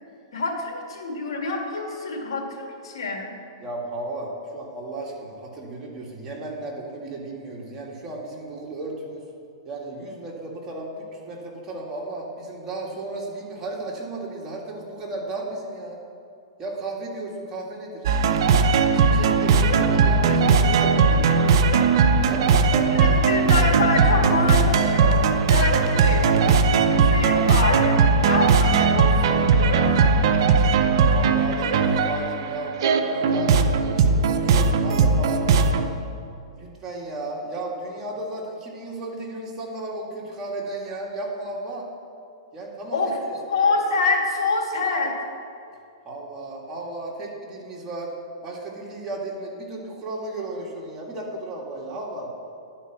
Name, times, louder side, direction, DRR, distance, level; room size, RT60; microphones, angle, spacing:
voice 1, 0.3-3.3 22.9-25.2 25.5-26.4 26.7-28.0 28.2-30.0 42.9-43.1 43.5-45.1, left 3 dB, 75° left, 0 dB, 1.9 m, -26 dB
voice 2, 3.6-9.2 9.7-16.0 16.6-18.0 18.9-21.5 22.3-23.1 31.1-36.0 36.5-41.9 42.5-43.4 46.0-48.1 48.4-52.3, right 2 dB, 20° right, -3 dB, 1.9 m, -34 dB
sound 1, 18.0-35.9, right 4 dB, 60° right, 0.6 m, -19 dB
11.0 x 4.5 x 6.1 m, 2.5 s
hypercardioid pair, 130°, 3 cm